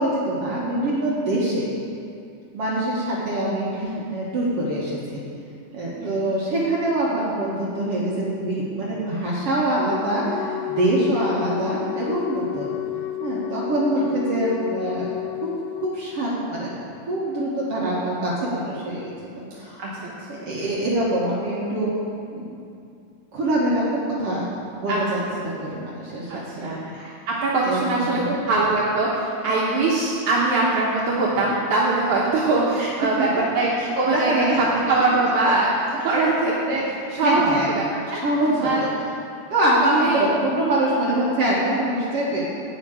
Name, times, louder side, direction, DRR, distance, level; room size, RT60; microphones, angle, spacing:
voice 1, 0.0-1.7 2.5-5.2 5.7-12.8 13.2-15.1 15.4-15.5 15.8-16.7 17.1-19.8 20.3-21.9 22.3-22.6 23.3-24.4 24.8-25.0 25.3-26.7 27.7-27.8 28.2-28.3 32.8-32.9 33.8-34.8 36.7-36.8 37.2-37.7 38.1-38.9 39.5-42.4, right 1 dB, 55° right, -6 dB, 2.2 m, -24 dB
voice 2, 3.7-4.0 6.0-6.3 11.1-11.5 13.9-14.0 19.8-20.1 24.9-25.2 26.3-33.3 33.5-33.7 33.9-35.7 36.0-37.8 38.1-38.2 38.6-38.8 39.8-40.3, right 2 dB, 75° right, -5 dB, 2.5 m, -22 dB
Wind instrument woodwind instrument, 9.9-15.9, left 14 dB, 75° left, 1.8 m, -31 dB
11.5 x 5.1 x 8.6 m, 2.5 s
omnidirectional pair, 3.5 m